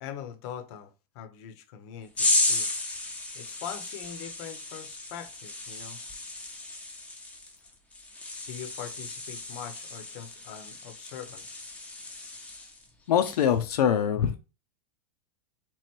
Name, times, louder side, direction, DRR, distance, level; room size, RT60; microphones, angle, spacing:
voice 1, 0.0-2.7 3.3-6.0 8.5-11.4, left 9 dB, 50° left, 0.8 m, -42 dB
sound 1, 2.2-12.9 13.2-13.6, left 2 dB, 5° left, 0.7 m, -33 dB
voice 2, 13.1-14.4, left 9 dB, 90° left, 0.7 m, -23 dB
3.8 x 3.2 x 4.4 m
supercardioid pair, 140°, 19 cm